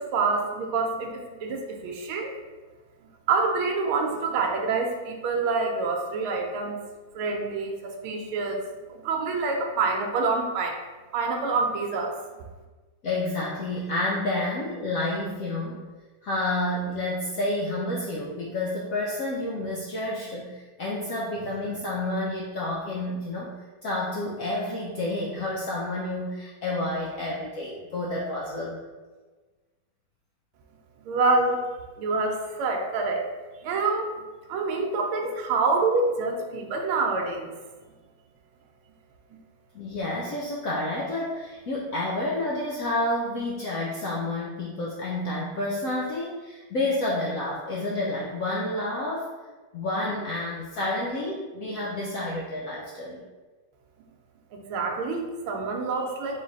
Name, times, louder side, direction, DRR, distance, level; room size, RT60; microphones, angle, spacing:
voice 1, 0.0-2.3 3.3-6.8 7.1-8.6 8.9-10.8 11.1-12.1 31.0-31.6 32.0-33.2 33.6-34.1 34.5-37.5 54.7-56.4, right 3 dB, 90° right, 2 dB, 1.5 m, -26 dB
voice 2, 13.0-15.8 16.2-28.8 39.7-49.3 49.7-53.3, left 1 dB, 85° left, -4 dB, 0.7 m, -29 dB
3.8 x 3.1 x 4.0 m, 1.3 s
omnidirectional pair, 2.2 m